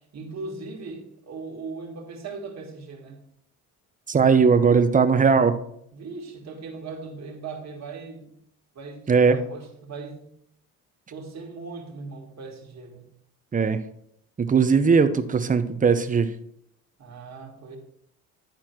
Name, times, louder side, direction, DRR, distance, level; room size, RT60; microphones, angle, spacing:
voice 1, 0.1-3.2 5.9-8.3 8.8-10.3 11.1-13.1 17.0-17.8, right 4 dB, 45° right, 2 dB, 2.0 m, -39 dB
voice 2, 4.1-5.5 9.1-9.4 13.5-13.8 14.4-16.3, right 5 dB, 20° right, 9 dB, 0.7 m, -19 dB
10.5 x 4.3 x 4.6 m, 0.71 s
supercardioid pair, 85°, 38 cm